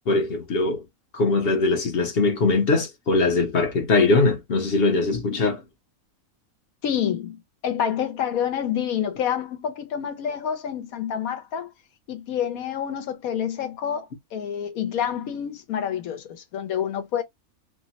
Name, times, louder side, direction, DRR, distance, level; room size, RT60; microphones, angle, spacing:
voice 1, 0.1-0.8 1.1-5.6, left 3 dB, 50° left, 0.8 m, -21 dB
voice 2, 6.8-7.4 7.6-11.7 12.1-14.1 14.3-17.2, left 9 dB, 75° left, 1.1 m, -28 dB
3.0 x 2.0 x 2.7 m
omnidirectional pair, 1.5 m